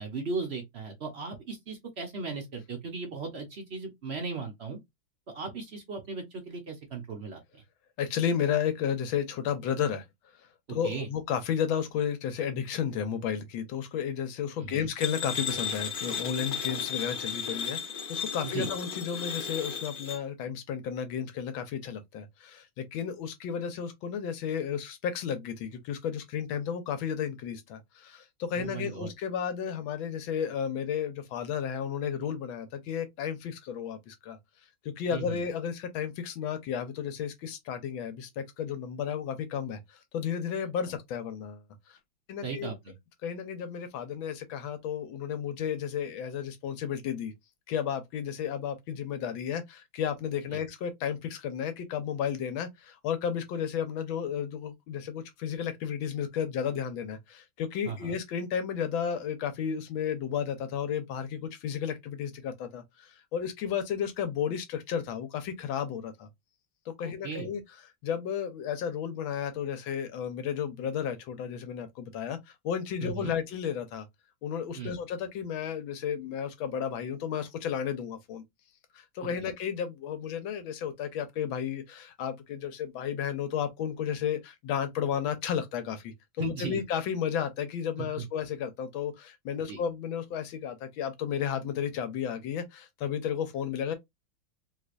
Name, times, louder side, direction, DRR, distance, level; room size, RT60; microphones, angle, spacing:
voice 1, 0.0-4.8 5.3-7.6 10.8-11.1 14.6-14.9 18.4-18.7 28.6-29.1 35.1-35.4 42.4-42.9 50.5-50.6 57.8-58.2 67.0-67.5 73.0-73.3 74.8-75.0 86.4-86.8 88.0-88.2 89.7-89.8, right 5 dB, 65° right, 0.6 m, -37 dB
voice 2, 8.0-10.0 10.7-34.4 34.8-41.6 41.9-42.0 42.3-42.7 43.2-47.3 47.7-66.3 66.9-67.6 68.0-72.4 72.6-74.1 74.4-78.4 78.9-93.9, left 8 dB, 80° left, 1.5 m, -33 dB
sound 1, 15.0-20.2, left 7 dB, 60° left, 0.5 m, -34 dB
3.3 x 3.2 x 2.4 m
omnidirectional pair, 2.2 m